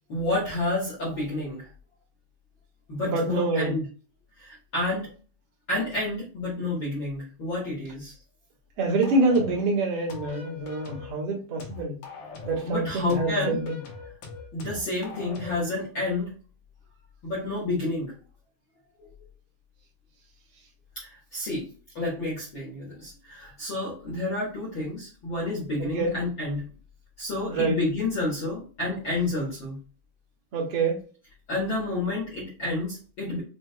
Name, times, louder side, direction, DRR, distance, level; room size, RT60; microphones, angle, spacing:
voice 1, 0.1-1.7 2.9-3.8 4.4-5.1 5.7-8.1 12.6-13.6 14.5-16.3 17.2-18.1 20.9-21.6 21.9-26.6 27.2-29.8 31.5-33.4, left 2 dB, 65° left, -5 dB, 1.2 m, -29 dB
voice 2, 3.0-3.8 8.8-12.0 12.4-13.8 25.9-26.2 27.5-27.8 30.5-31.1, right 2 dB, 65° right, -3 dB, 1.4 m, -26 dB
sound 1, 9.0-9.7 10.1-11.1 11.6-12.7 13.1-15.7, left 4 dB, 80° left, 1.3 m, -41 dB
5.9 x 2.8 x 2.2 m, 0.38 s
omnidirectional pair, 4.3 m